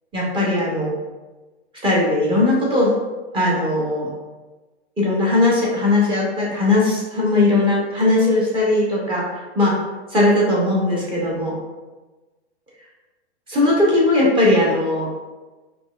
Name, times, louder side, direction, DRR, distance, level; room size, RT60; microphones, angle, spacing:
voice 1, 0.1-0.9 1.8-2.9 3.3-4.1 5.0-9.3 9.5-9.8 10.1-11.5 13.5-15.1, left 2 dB, 15° right, -5 dB, 0.8 m, -18 dB
3.9 x 2.3 x 2.3 m, 1.2 s
hypercardioid pair, 115°, 34 cm